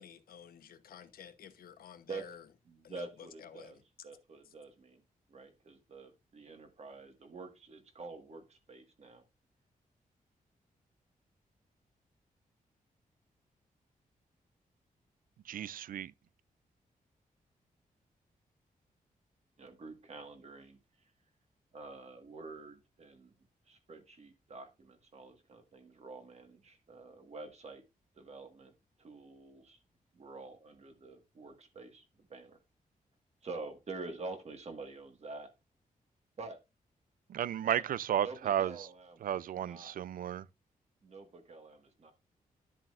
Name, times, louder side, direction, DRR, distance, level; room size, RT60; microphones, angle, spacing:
voice 1, 0.0-2.4 2.8-3.1 3.4-3.8, left 7 dB, 90° left, 1.0 m, -51 dB
voice 2, 2.7-5.0 5.3-9.2 19.6-20.8 21.7-23.3 23.7-27.8 28.1-28.7 29.0-29.8 30.1-32.0 32.3-32.6 33.4-35.5 36.4-36.6 37.6-40.0 41.0-42.1, right 3 dB, 50° right, 1.6 m, -47 dB
voice 3, 15.5-16.1 37.3-38.7 39.2-40.5, right 10 dB, 70° right, 0.4 m, -33 dB
11.0 x 7.5 x 2.5 m
wide cardioid pair, 125°, 15 cm